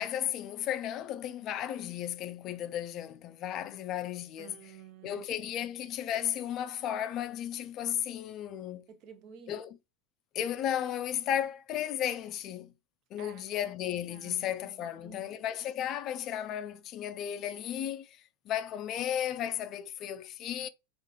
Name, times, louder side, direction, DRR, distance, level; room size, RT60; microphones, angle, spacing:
voice 1, 0.0-4.6 5.0-8.8 9.5-9.8 10.3-12.7 13.1-18.2 18.5-20.7, left 10 dB, 40° left, 0.4 m, -34 dB
voice 2, 4.4-5.7 8.9-9.6 13.2-13.7 14.1-15.4, right 7 dB, 45° right, 0.7 m, -52 dB
5.2 x 2.5 x 2.2 m
figure-of-eight pair, 85°, 0 cm